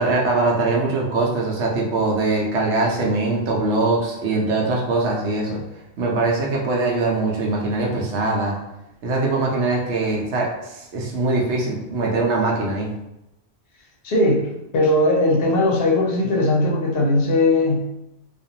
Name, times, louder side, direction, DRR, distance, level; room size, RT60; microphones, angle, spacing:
voice 1, 0.0-5.6 6.0-8.5 9.0-12.9, right 3 dB, 85° right, -1 dB, 1.0 m, -22 dB
voice 2, 14.0-14.5 14.7-17.9, left 2 dB, 65° left, 1 dB, 0.7 m, -19 dB
2.5 x 2.3 x 2.7 m, 0.87 s
omnidirectional pair, 1.1 m